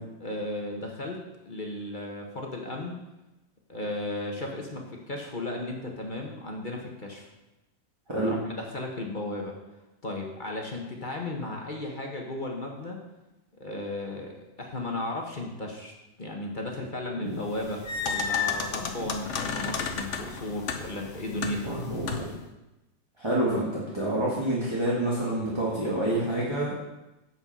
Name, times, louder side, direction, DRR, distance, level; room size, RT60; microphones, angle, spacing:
voice 1, 0.2-1.2 1.4-3.0 3.7-7.2 8.3-9.5 10.0-13.0 13.6-15.9 16.2-21.7, left 1 dB, 30° left, 0 dB, 1.1 m, -35 dB
sound 1, 17.4-22.4, left 6 dB, 50° left, 0.9 m, -32 dB
voice 2, 21.3-22.4 23.2-26.7, right 1 dB, 15° right, -7 dB, 1.8 m, -28 dB
8.9 x 7.3 x 5.5 m, 0.99 s
omnidirectional pair, 2.0 m